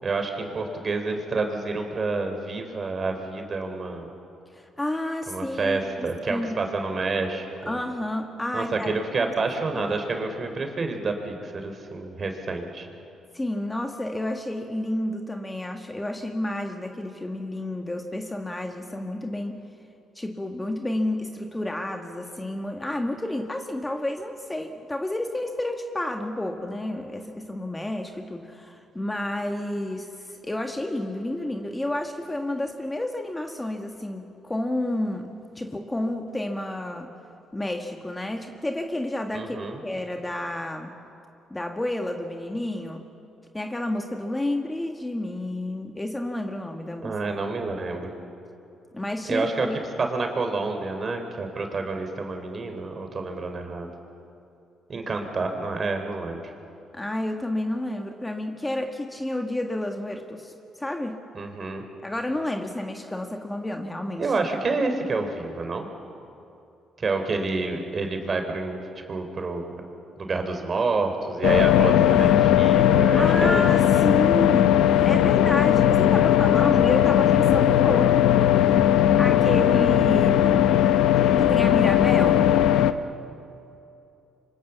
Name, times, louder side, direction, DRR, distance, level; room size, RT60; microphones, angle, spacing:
voice 1, 0.0-4.1 5.3-7.8 8.5-12.9 39.3-39.8 47.0-48.1 49.3-49.7 50.0-53.9 54.9-56.5 61.3-61.8 64.2-65.9 67.0-68.8 69.1-69.7 70.2-73.7 79.4-79.9, right 3 dB, 40° right, 5 dB, 4.0 m, -28 dB
voice 2, 4.5-6.6 7.6-9.0 9.2-9.3 9.7-9.8 13.3-19.6 20.1-37.1 37.5-40.9 41.5-43.0 43.5-47.1 48.9-49.8 56.9-61.2 62.0-64.3 73.2-78.4 79.2-80.6 81.2-82.5, left 1 dB, 15° left, 4 dB, 1.7 m, -30 dB
sound 1, 71.4-82.9, left 11 dB, 85° left, 0.8 m, -18 dB
26.5 x 24.5 x 7.3 m, 2.7 s
cardioid pair, 90°, 0 cm